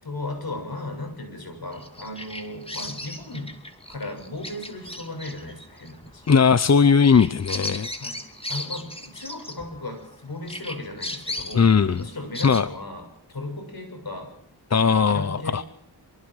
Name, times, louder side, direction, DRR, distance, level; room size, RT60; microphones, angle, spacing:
voice 1, 0.0-3.6 3.9-6.2 7.9-14.3 14.8-15.6, left 2 dB, 55° left, 4 dB, 6.8 m, -36 dB
Bird vocalization bird call bird song, 1.7-10.1 10.5-12.6, left 1 dB, 15° left, 2.7 m, -36 dB
voice 2, 6.3-7.9 11.5-12.0 12.4-12.7 14.7-15.6, left 6 dB, 40° left, 14 dB, 0.8 m, -18 dB
25.0 x 25.0 x 4.9 m, 0.70 s
wide cardioid pair, 100°, 42 cm